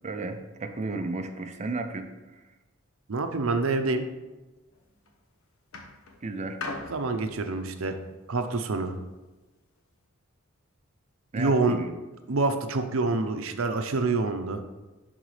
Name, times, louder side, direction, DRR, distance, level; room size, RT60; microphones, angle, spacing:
voice 1, 0.0-2.4 6.2-6.6 11.3-12.0, right 3 dB, 35° right, 7 dB, 0.6 m, -33 dB
voice 2, 3.1-4.1 6.9-8.0 8.3-8.9 11.4-11.8 12.3-14.6, right 3 dB, 75° right, 7 dB, 0.7 m, -26 dB
sound 1, 4.7-5.1 5.7-9.0 9.8-9.9, left 3 dB, 90° left, 0.9 m, -41 dB
10.5 x 4.0 x 3.2 m, 1.1 s
head